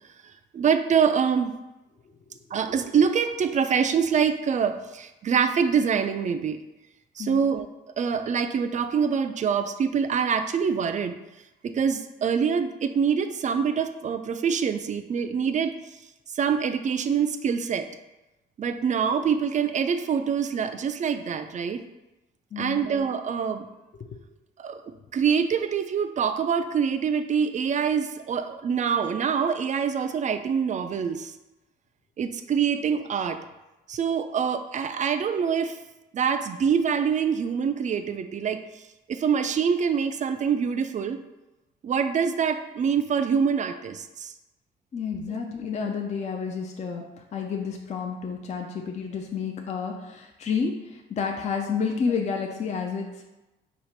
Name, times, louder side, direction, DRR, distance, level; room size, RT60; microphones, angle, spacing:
voice 1, 0.2-1.5 2.5-6.6 7.2-7.7 8.0-11.2 11.6-15.7 16.3-17.9 18.6-21.8 22.6-23.7 24.6-24.8 25.1-31.3 32.2-33.4 33.9-35.8 36.1-38.6 39.1-41.2 41.8-44.3 45.3-45.4, right 7 dB, 40° right, 9 dB, 0.4 m, -25 dB
voice 2, 22.5-22.9 44.9-47.0 47.3-53.2, left 5 dB, 35° left, 2 dB, 0.5 m, -30 dB
4.1 x 2.4 x 4.4 m, 1.0 s
cardioid pair, 90°, 20 cm